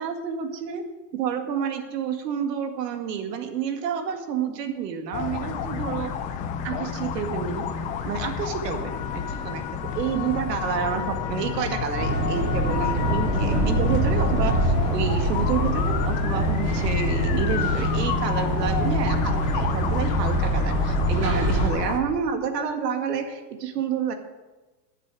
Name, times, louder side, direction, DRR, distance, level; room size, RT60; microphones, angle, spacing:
voice 1, 0.0-6.1 6.6-7.6 8.0-24.1, right 7 dB, 80° right, 6 dB, 2.1 m, -29 dB
sound 1, 5.1-22.0, left 7 dB, 15° left, 0.4 m, -29 dB
sound 2, 12.0-21.7, right 1 dB, 30° right, 3.6 m, -24 dB
21.5 x 7.5 x 4.8 m, 1.2 s
supercardioid pair, 140°, 48 cm